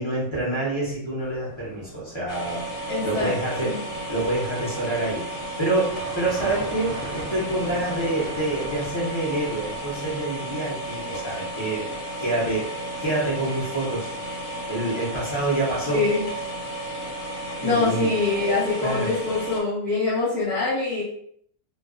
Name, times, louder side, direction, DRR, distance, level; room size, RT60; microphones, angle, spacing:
voice 1, 0.0-2.6 3.0-3.7 4.1-5.3 5.6-11.9 12.2-12.7 13.0-14.1 14.7-16.0 17.6-18.1 18.8-19.1, right 2 dB, 50° left, -6 dB, 0.3 m, -27 dB
sound 1, 1.2-10.3, right 2 dB, 65° right, 0.8 m, -40 dB
sound 2, 2.3-19.6, right 1 dB, 70° left, 0.9 m, -33 dB
voice 2, 2.9-3.7 15.9-16.3 17.6-21.0, left 3 dB, ahead, -9 dB, 0.7 m, -24 dB
2.4 x 2.2 x 2.3 m, 0.66 s
omnidirectional pair, 1.6 m